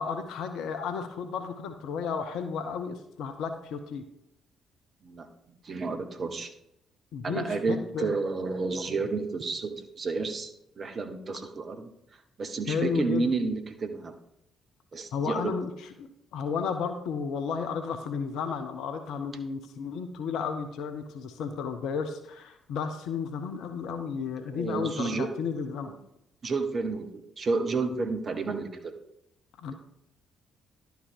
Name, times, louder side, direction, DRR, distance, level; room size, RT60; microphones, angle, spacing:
voice 1, 0.0-4.0 7.1-8.1 12.7-13.3 15.1-25.9 29.6-29.7, left 6 dB, 60° left, 8 dB, 0.7 m, -33 dB
voice 2, 5.6-6.5 7.2-10.5 10.8-11.9 12.4-14.1 14.9-15.5 24.5-25.3 25.9-26.0 26.4-28.9, right 4 dB, 40° right, 6 dB, 1.1 m, -31 dB
11.0 x 5.1 x 4.6 m, 0.77 s
figure-of-eight pair, 40°, 0 cm